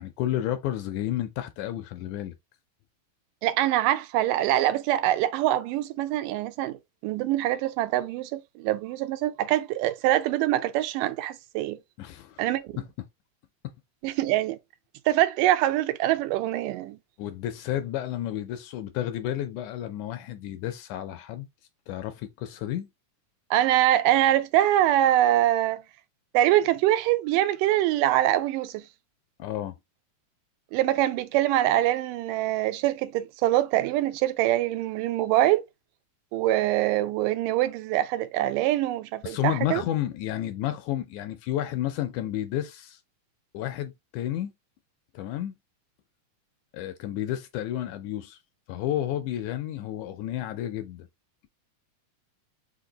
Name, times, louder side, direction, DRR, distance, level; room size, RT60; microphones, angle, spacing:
voice 1, 0.0-2.3 12.0-12.8 17.2-21.5 21.9-22.9 29.4-29.8 39.2-43.0 43.5-44.5 45.1-45.5 46.7-48.4 48.7-51.1, left 12 dB, 80° left, 1.8 m, -31 dB
voice 2, 3.4-11.8 12.4-12.8 14.0-14.6 15.1-17.0 23.5-25.8 26.3-28.9 30.7-35.6 36.3-39.8, right 14 dB, 85° right, 2.2 m, -24 dB
5.2 x 2.5 x 3.8 m
omnidirectional pair, 3.8 m